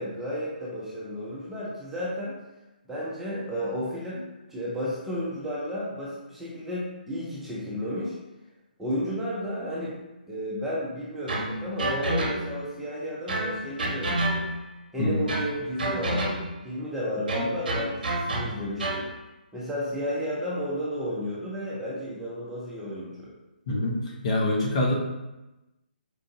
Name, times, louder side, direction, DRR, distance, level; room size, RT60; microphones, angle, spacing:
voice 1, 0.0-2.4 2.9-8.2 8.8-10.0 10.3-14.5 14.9-19.1 19.5-23.3, equal, 5° right, -7 dB, 0.6 m, -32 dB
sound 1, 11.3-12.7 13.3-14.7 15.3-16.6 17.3-19.1, right 1 dB, 65° right, 0.7 m, -29 dB
voice 2, 15.0-15.3 23.7-24.9, left 1 dB, 40° left, -1 dB, 0.8 m, -25 dB
4.5 x 2.5 x 2.8 m, 1.0 s
hypercardioid pair, 150°, 5 cm